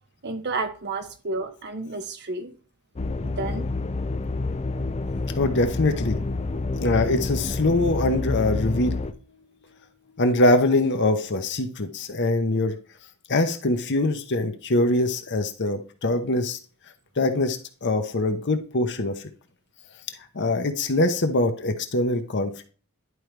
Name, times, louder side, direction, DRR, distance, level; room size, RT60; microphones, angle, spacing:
voice 1, 0.2-2.5 3.2-3.7, right 3 dB, 50° right, 8 dB, 1.1 m, -31 dB
sound 1, 3.0-9.1, left 3 dB, 30° left, 0.5 m, -28 dB
voice 2, 5.4-6.2 6.8-8.9 10.2-12.7 13.3-16.6 17.2-19.2 20.3-22.6, left 2 dB, 55° left, 6 dB, 0.9 m, -23 dB
11.0 x 4.6 x 3.3 m, 0.40 s
head